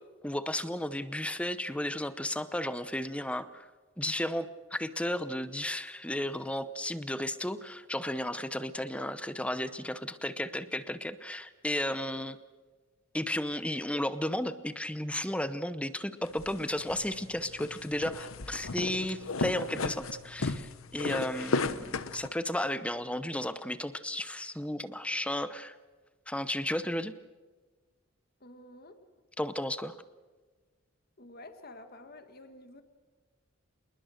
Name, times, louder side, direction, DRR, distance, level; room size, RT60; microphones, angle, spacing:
voice 1, 0.2-3.7 4.0-12.4 13.1-25.8 26.3-27.1 29.4-30.0, left 1 dB, 5° left, 13 dB, 0.8 m, -34 dB
sound 1, 16.2-22.3, left 3 dB, 85° left, 1.0 m, -35 dB
voice 2, 28.4-29.0 31.2-32.8, left 2 dB, 45° left, 8 dB, 1.9 m, -50 dB
27.0 x 20.5 x 6.6 m, 1.4 s
head